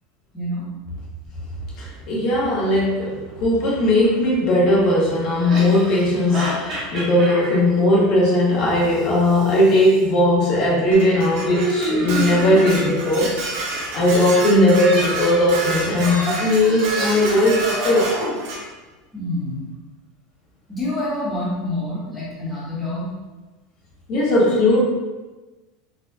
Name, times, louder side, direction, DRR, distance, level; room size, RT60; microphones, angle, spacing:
voice 1, 0.3-0.7 19.1-19.7 20.7-23.1, left 1 dB, 5° left, -8 dB, 0.7 m, -27 dB
voice 2, 1.8-13.3 13.9-18.1 24.1-24.8, left 1 dB, 40° left, -5 dB, 0.9 m, -18 dB
sound 1, 4.0-4.1 5.4-7.6 8.8-10.0 11.5-13.0 14.7-18.4, equal, 25° right, 0.8 m, -29 dB
Dishes pots and pans, 10.9-18.6, right 3 dB, 70° right, 0.9 m, -29 dB
4.2 x 2.1 x 2.6 m, 1.2 s
supercardioid pair, 175°, 0 cm